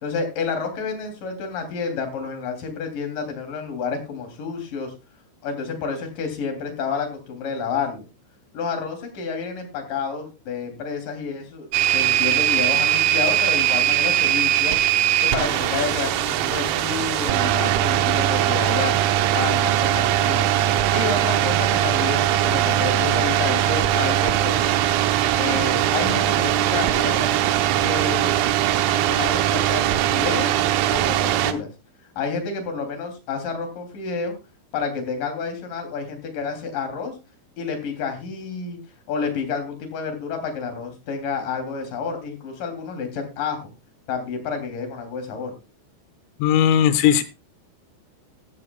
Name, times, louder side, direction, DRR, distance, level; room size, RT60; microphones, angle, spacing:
voice 1, 0.0-4.9 5.4-8.1 8.5-14.8 15.3-18.9 19.3-20.5 20.9-24.7 25.4-27.4 27.8-28.4 29.1-30.5 30.9-31.7 32.2-34.3 34.7-37.1 37.6-38.8 39.1-43.7 44.1-45.5, left 5 dB, 45° left, 5 dB, 4.2 m, -29 dB
sound 1, 11.7-31.5, right 12 dB, 90° right, 3.8 m, -20 dB
voice 2, 46.4-47.2, left 9 dB, 85° left, 13 dB, 3.5 m, -17 dB
14.5 x 14.0 x 2.3 m, 0.29 s
omnidirectional pair, 5.9 m